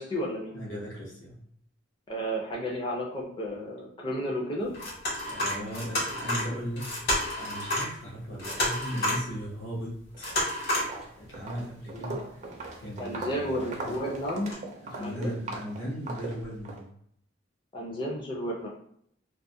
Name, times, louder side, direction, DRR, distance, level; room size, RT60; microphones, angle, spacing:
voice 1, 0.0-0.6 2.1-4.7 11.9-12.2 13.0-14.5 15.0-15.3 17.7-18.7, equal, 25° left, -2 dB, 0.4 m, -32 dB
voice 2, 0.5-1.4 5.2-6.9 7.4-10.3 11.2-12.2 12.8-13.9 14.8-16.9, equal, 75° left, -3 dB, 0.8 m, -37 dB
sound 1, 4.7-7.9 8.2-9.3 10.2-10.9 11.4-11.5 12.5-12.9 13.9-14.0 14.5-14.6, left 1 dB, 55° left, 1.1 m, -30 dB
Walk footsteps, 10.1-10.5 10.8-16.8, right 2 dB, 40° right, 0.4 m, -40 dB
2.3 x 2.0 x 2.6 m, 0.67 s
head